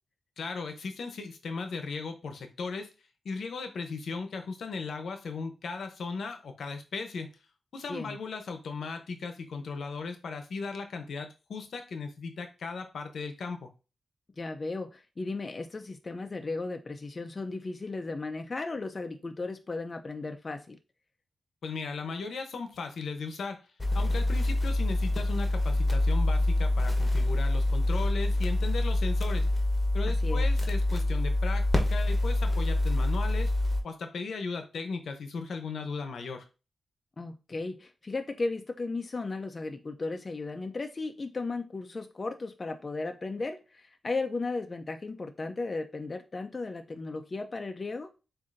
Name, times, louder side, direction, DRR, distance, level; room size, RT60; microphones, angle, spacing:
voice 1, 0.4-2.9 3.2-7.3 7.7-13.7 21.6-23.6 23.9-29.4 29.9-33.5 33.8-36.4, left 4 dB, 80° left, 0.8 m, -37 dB
voice 2, 14.4-20.8 30.0-30.5 37.2-48.1, left 3 dB, 35° left, 0.5 m, -35 dB
sound 1, 23.8-33.8, left 1 dB, 15° left, 1.1 m, -26 dB
7.3 x 2.6 x 2.6 m
wide cardioid pair, 95°, 0 cm